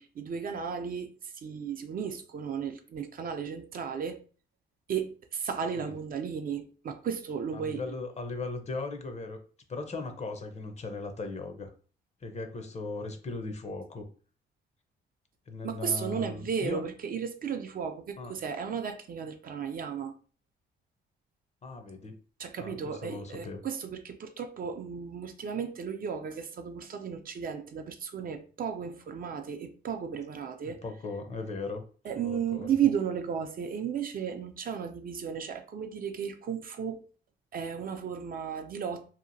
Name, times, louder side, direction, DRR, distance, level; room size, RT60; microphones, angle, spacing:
voice 1, 0.0-4.2 4.9-7.8 15.6-20.1 22.4-30.8 32.0-37.0 37.5-39.1, right 7 dB, 45° right, 0.4 m, -34 dB
voice 2, 7.5-9.4 9.7-11.7 12.2-14.1 15.5-16.9 18.2-18.3 21.6-22.2 22.6-23.6 30.6-31.8 32.2-32.7, left 3 dB, 35° left, 0.6 m, -38 dB
2.8 x 2.4 x 2.6 m
cardioid pair, 90°, 20 cm